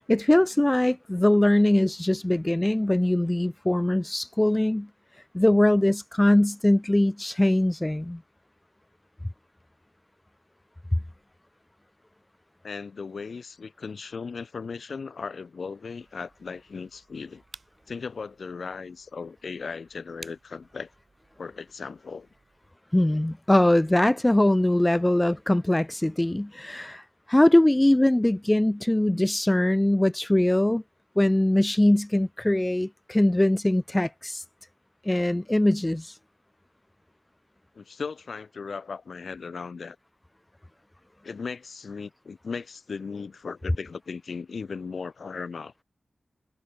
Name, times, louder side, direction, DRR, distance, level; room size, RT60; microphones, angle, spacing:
voice 1, 0.1-4.9 5.3-8.2 22.9-30.8 31.2-34.4 35.1-36.2, left 1 dB, 15° left, 0.4 m, -22 dB
voice 2, 12.6-17.4 17.9-20.9 21.4-22.3 37.7-40.0 41.2-45.7, left 5 dB, 70° left, 4.1 m, -37 dB
sound 1, 16.0-22.7, right 3 dB, 45° right, 3.5 m, -54 dB
wide cardioid pair, 100°, 0 cm